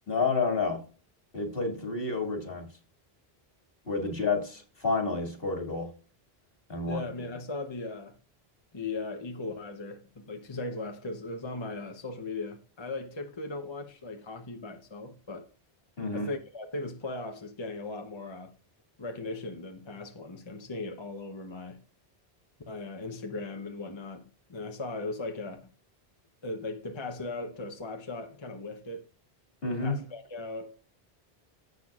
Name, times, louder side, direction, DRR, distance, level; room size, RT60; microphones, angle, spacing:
voice 1, 0.1-0.8 1.3-2.7 3.9-5.9 6.7-7.0 16.0-16.3 29.6-30.0, left 4 dB, 65° left, 2.5 m, -29 dB
voice 2, 6.8-8.2 8.7-15.5 16.1-18.5 19.0-21.8 22.7-25.6 26.4-29.0 29.8-30.8, left 3 dB, 30° left, 0.9 m, -38 dB
16.0 x 6.0 x 2.4 m
omnidirectional pair, 1.0 m